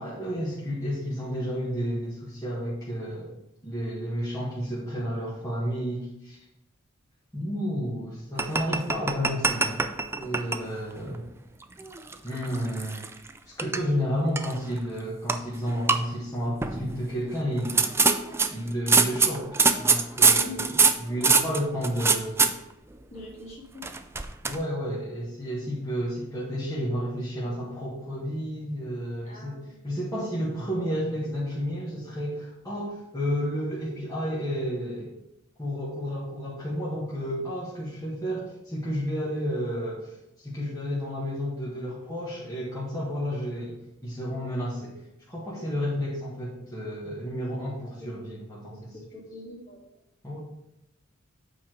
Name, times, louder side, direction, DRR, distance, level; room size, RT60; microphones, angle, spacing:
voice 1, 0.0-3.3 3.6-6.4 7.3-9.8 10.2-11.3 12.2-13.0 13.4-17.9 18.5-20.6 21.0-22.5 24.4-29.6 29.8-35.1 35.6-48.7 50.2-50.4, equal, 15° left, -8 dB, 1.8 m, -31 dB
sound 1, 8.4-10.6 11.0-11.2 11.8-13.3 13.6-13.8 14.4-14.8 15.3-15.4 15.7-16.0 16.6-16.9 17.6-22.5 23.8-24.6, right 4 dB, 10° right, 0.4 m, -23 dB
voice 2, 20.3-20.7 23.1-23.9 29.2-29.8 48.0-48.4 49.1-50.0, left 1 dB, 35° left, -3 dB, 2.5 m, -43 dB
8.7 x 4.7 x 5.0 m, 0.83 s
head